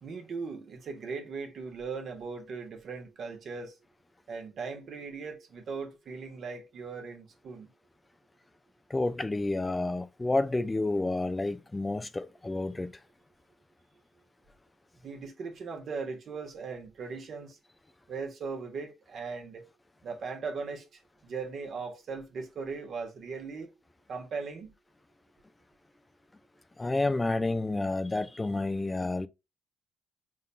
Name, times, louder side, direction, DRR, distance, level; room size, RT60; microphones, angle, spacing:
voice 1, 0.0-3.8 4.3-7.7 15.0-17.6 18.1-19.6 20.0-20.8 21.2-23.7 24.1-24.7, right 4 dB, 55° right, 1.3 m, -38 dB
voice 2, 8.9-12.9 26.8-29.3, left 2 dB, 20° left, 0.4 m, -30 dB
5.3 x 3.7 x 2.2 m
supercardioid pair, 70°, 0 cm